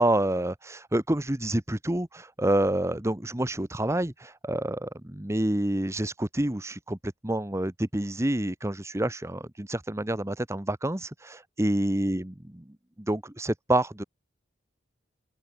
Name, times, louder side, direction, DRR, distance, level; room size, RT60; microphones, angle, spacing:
voice 1, 0.0-12.2 13.0-14.0, right 1 dB, 15° right, 1.1 m, -28 dB
open air
head